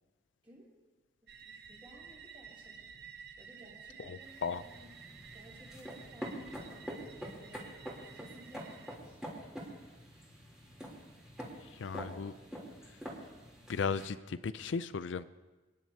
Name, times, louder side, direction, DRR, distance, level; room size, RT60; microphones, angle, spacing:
voice 1, 0.4-0.7 1.2-2.9 3.4-7.0 7.3-7.7 8.1-9.8, right 1 dB, 30° right, -7 dB, 6.0 m, -57 dB
sound 1, 1.3-9.0, right 6 dB, 60° right, 0.7 m, -53 dB
voice 2, 4.1-4.6 11.7-12.3 13.7-15.2, left 5 dB, 75° left, 14 dB, 0.5 m, -36 dB
sound 2, 4.2-14.1, equal, 5° right, 3.2 m, -46 dB
29.0 x 10.5 x 2.8 m, 1.2 s
head